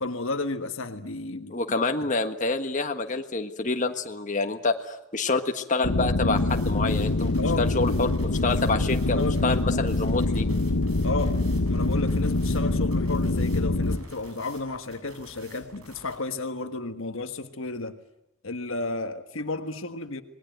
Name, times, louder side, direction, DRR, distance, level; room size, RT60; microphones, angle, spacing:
voice 1, 0.0-1.6 7.4-8.0 8.7-9.4 11.0-11.4 11.7-18.0 18.4-20.2, left 3 dB, 65° left, 1.4 m, -32 dB
voice 2, 1.5-7.3 7.6-10.4, left 3 dB, 35° left, 1.5 m, -27 dB
sound 1, 5.8-14.0, left 2 dB, 85° left, 0.9 m, -25 dB
sound 2, 6.4-16.2, right 2 dB, 80° right, 7.3 m, -50 dB
26.5 x 20.0 x 9.2 m
head